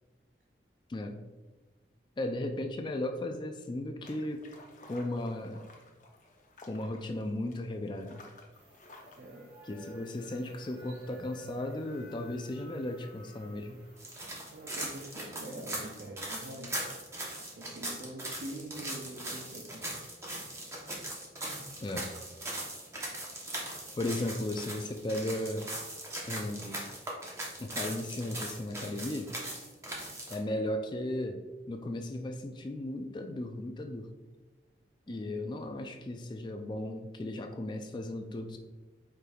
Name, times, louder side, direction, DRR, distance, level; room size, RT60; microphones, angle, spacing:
voice 1, 0.9-1.2 2.2-4.5 4.8-5.7 6.6-8.2 9.6-13.8 21.8-22.1 24.0-25.7 26.3-26.8 27.6-29.3 30.3-34.1 35.1-38.6, left 1 dB, 25° left, 5 dB, 0.3 m, -36 dB
sound 1, 4.0-9.2, left 2 dB, 45° left, 0.7 m, -55 dB
sound 2, 8.5-15.1, equal, 35° right, 1.2 m, -54 dB
voice 2, 9.1-9.5 14.5-16.9 17.6-19.9 21.5-21.6 35.1-35.4, right 1 dB, 60° right, -2 dB, 0.7 m, -45 dB
sound 3, 14.0-30.3, right 1 dB, 15° right, 0.8 m, -40 dB
5.0 x 4.4 x 2.3 m, 1.2 s
head